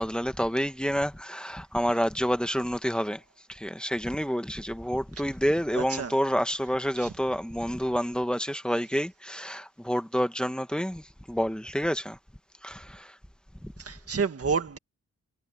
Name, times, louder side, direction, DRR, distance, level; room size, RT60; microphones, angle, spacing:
voice 1, 0.0-3.2 3.5-11.0 11.3-12.2 12.6-13.1, equal, 5° left, 1.2 m, -28 dB
voice 2, 5.8-6.1 7.0-7.1 13.8-14.8, right 5 dB, 50° right, 1.8 m, -29 dB
wide cardioid pair, 170°, 31 cm